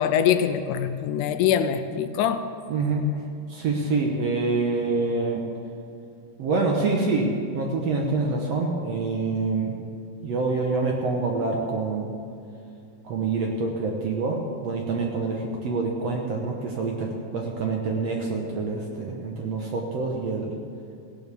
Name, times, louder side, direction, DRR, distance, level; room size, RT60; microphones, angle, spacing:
voice 1, 0.0-2.5, left 9 dB, 80° left, 10 dB, 2.1 m, -23 dB
voice 2, 2.7-3.0 3.5-5.4 6.4-9.7 10.2-12.1 13.0-20.5, right 3 dB, 60° right, 0 dB, 2.1 m, -26 dB
17.5 x 15.5 x 3.6 m, 2.6 s
omnidirectional pair, 3.6 m